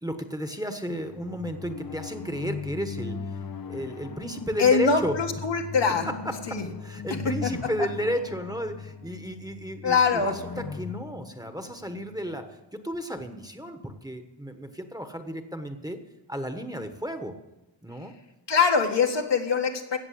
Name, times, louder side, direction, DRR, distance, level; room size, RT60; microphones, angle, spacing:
voice 1, 0.0-3.2 3.7-5.2 5.9-12.5 12.7-16.0 16.3-17.4 17.8-18.1, equal, 10° right, 6 dB, 1.2 m, -33 dB
sound 1, 0.9-12.5, left 5 dB, 55° left, 0.7 m, -39 dB
voice 2, 4.6-6.1 6.5-6.7 7.4-7.5 9.8-10.4 18.5-20.0, left 5 dB, 70° left, 3 dB, 1.8 m, -23 dB
16.5 x 7.0 x 8.5 m, 1.0 s
wide cardioid pair, 100°, 43 cm